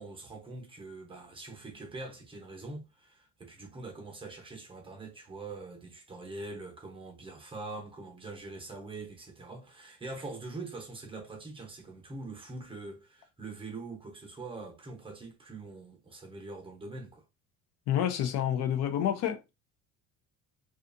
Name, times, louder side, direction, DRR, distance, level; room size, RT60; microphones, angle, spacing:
voice 1, 0.0-17.2, right 3 dB, 20° right, 0.8 m, -43 dB
voice 2, 17.9-19.5, left 10 dB, 60° left, 0.5 m, -29 dB
2.5 x 2.4 x 2.5 m
cardioid pair, 125°, 29 cm